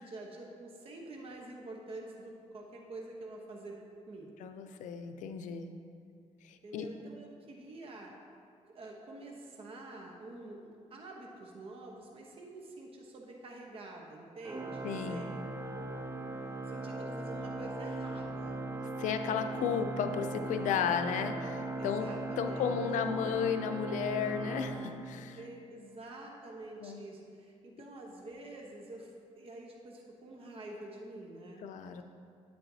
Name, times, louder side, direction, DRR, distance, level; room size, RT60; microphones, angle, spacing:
voice 1, 0.0-3.7 4.1-4.4 6.6-8.1 8.7-15.8 16.7-18.6 21.8-22.8 25.3-31.7, right 2 dB, 50° right, 0 dB, 1.0 m, -47 dB
voice 2, 4.4-5.7 6.5-6.9 14.8-15.2 19.0-22.1 22.4-25.4 26.8-27.0 31.6-32.0, left 7 dB, 90° left, 7 dB, 0.5 m, -33 dB
Organ, 14.4-25.6, right 2 dB, 20° right, 0.6 m, -39 dB
9.0 x 8.8 x 2.8 m, 2.3 s
cardioid pair, 110°, 12 cm